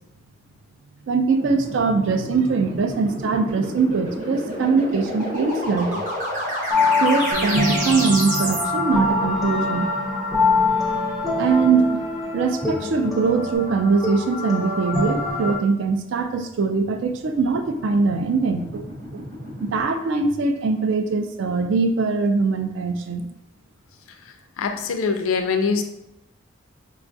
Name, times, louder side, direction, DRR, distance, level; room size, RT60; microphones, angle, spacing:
voice 1, 1.1-6.1 7.0-9.9 11.4-12.0 12.3-18.9 19.1-19.2 19.6-23.3, right 4 dB, 65° right, 8 dB, 0.3 m, -22 dB
sound 1, 1.3-8.6 16.9-19.8, equal, 35° right, 0.8 m, -30 dB
sound 2, 6.7-15.6, left 3 dB, ahead, 0.4 m, -24 dB
Bass guitar, 7.3-13.6, right 2 dB, 85° right, 0.8 m, -38 dB
voice 2, 24.6-25.8, left 5 dB, 90° left, 6 dB, 0.4 m, -23 dB
4.6 x 2.3 x 2.6 m, 0.85 s
head